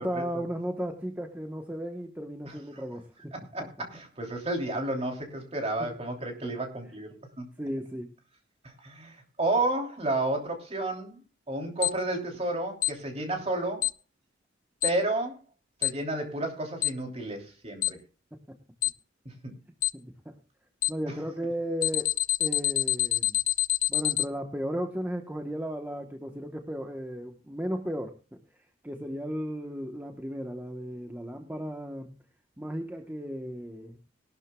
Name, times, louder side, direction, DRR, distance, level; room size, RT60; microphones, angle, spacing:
voice 1, 0.0-3.3 5.8-5.9 7.6-8.1 18.3-18.6 19.9-20.4 20.9-22.1 22.4-23.4 23.9-28.1 28.5-32.2 32.6-34.0, equal, 10° right, 4 dB, 1.1 m, -35 dB
voice 2, 3.3-7.5 8.6-11.2 11.5-13.8 14.8-15.4 15.8-18.0 19.2-19.5, right 2 dB, 35° right, 2 dB, 3.1 m, -31 dB
Alarm, 11.8-11.9 12.8-12.9 13.8-13.9 14.8-14.9 15.8-15.9 16.8-16.9 17.8-17.9 18.8-18.9 19.8-19.9 20.8-20.9 21.8-24.2, left 15 dB, 45° left, 0.5 m, -25 dB
20.0 x 12.0 x 2.3 m, 0.32 s
head